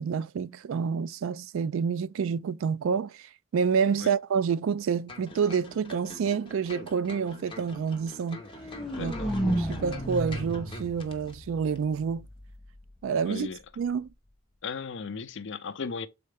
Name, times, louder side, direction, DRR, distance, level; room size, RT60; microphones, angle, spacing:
voice 1, 0.0-8.4 9.0-9.2 9.4-12.3 13.0-13.5 13.8-14.1, right 6 dB, 60° right, 0.3 m, -28 dB
sound 1, 5.1-11.4 11.7-11.8, left 2 dB, 20° left, 0.9 m, -46 dB
sound 2, 8.3-12.3, equal, ahead, 2.1 m, -32 dB
voice 2, 8.9-9.3 13.3-13.6 14.6-16.1, left 5 dB, 55° left, 0.5 m, -36 dB
6.5 x 4.2 x 3.4 m
head